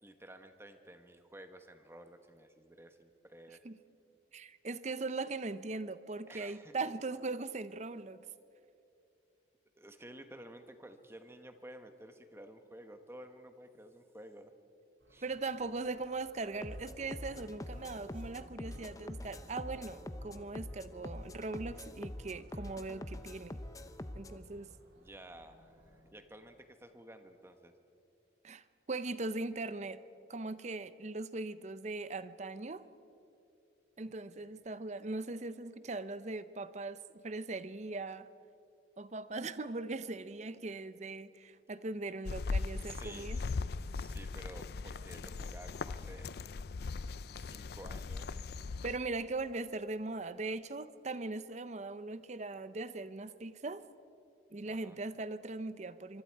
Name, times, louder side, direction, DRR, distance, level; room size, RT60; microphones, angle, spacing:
voice 1, 0.0-3.6 6.3-6.7 9.8-14.5 15.1-15.3 25.0-27.7 34.4-34.6 42.8-46.3 47.3-48.5 54.6-55.0, right 1 dB, 15° right, 7 dB, 1.2 m, -53 dB
voice 2, 4.3-8.2 15.2-23.6 24.1-24.7 28.4-28.6 28.9-30.0 30.3-32.8 34.0-38.3 39.0-43.4 48.8-53.8 54.5-56.2, right 3 dB, 40° right, 14 dB, 0.7 m, -40 dB
sound 1, 15.0-26.0, equal, 90° right, 4.0 m, -63 dB
sound 2, 16.6-24.4, left 1 dB, 20° left, 0.7 m, -45 dB
sound 3, 42.3-49.0, left 4 dB, 60° left, 0.4 m, -39 dB
24.5 x 24.0 x 4.7 m, 2.7 s
head